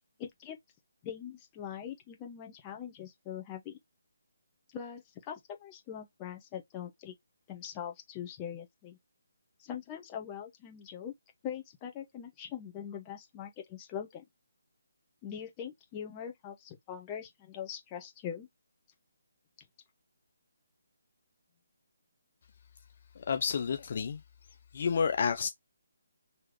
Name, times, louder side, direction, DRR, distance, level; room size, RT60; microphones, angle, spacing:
voice 1, 0.2-0.6 1.0-3.8 4.7-7.1 7.5-9.0 9.6-11.1 11.4-14.2 15.2-18.5, left 9 dB, 20° left, 1.0 m, -42 dB
voice 2, 23.2-24.2 24.7-25.5, left 6 dB, 45° left, 0.4 m, -30 dB
3.9 x 3.0 x 3.0 m
figure-of-eight pair, 150°, 0 cm